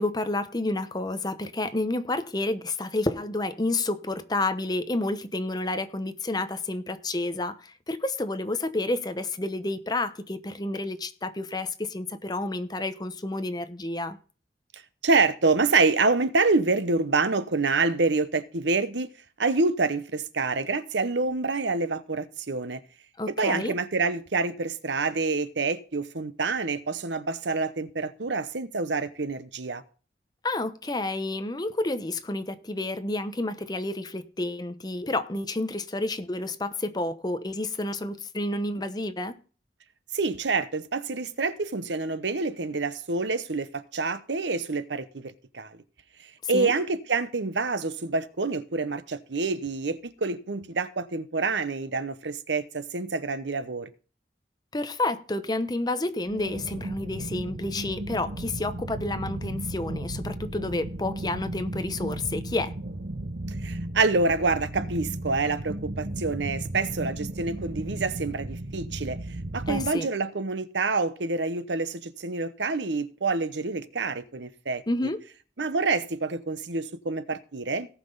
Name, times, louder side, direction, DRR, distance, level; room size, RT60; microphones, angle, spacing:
voice 1, 0.0-14.2 23.2-23.8 30.4-39.3 46.5-46.7 54.7-62.7 69.7-70.1 74.9-75.2, left 2 dB, 25° left, 0.9 m, -30 dB
voice 2, 15.0-19.1 19.4-22.8 23.3-29.8 40.1-45.8 46.5-53.9 63.6-69.2 69.5-74.8 75.6-77.9, right 3 dB, 85° right, 0.9 m, -27 dB
sound 1, 56.3-69.9, right 1 dB, 60° right, 0.9 m, -35 dB
18.0 x 6.0 x 3.9 m
head